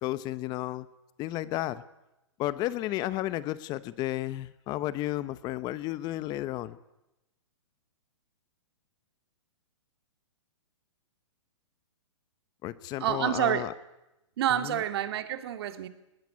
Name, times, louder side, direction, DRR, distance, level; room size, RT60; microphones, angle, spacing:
voice 1, 0.0-0.9 1.2-1.8 2.4-6.8 12.6-13.7 14.5-14.8, left 15 dB, 25° left, 16 dB, 0.9 m, -32 dB
voice 2, 13.0-13.7 14.4-15.9, right 11 dB, 55° right, 10 dB, 2.2 m, -28 dB
20.0 x 19.5 x 9.6 m, 0.94 s
hypercardioid pair, 145°, 16 cm